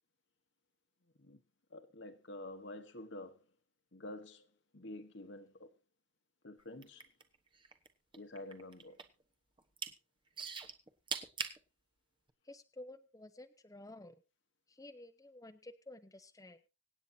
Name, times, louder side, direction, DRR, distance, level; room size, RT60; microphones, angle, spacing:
voice 1, 1.7-3.4 3.9-4.5 4.7-5.7 6.4-7.1 8.1-9.0, left 1 dB, 65° left, 1.5 m, -48 dB
sound 1, 6.7-7.9 8.1-9.2 9.6-9.9 10.4-11.6 12.3-12.4, right 5 dB, 25° right, 1.2 m, -41 dB
voice 2, 12.4-14.2 14.7-16.6, left 1 dB, 20° left, 0.8 m, -52 dB
25.5 x 8.9 x 2.8 m
head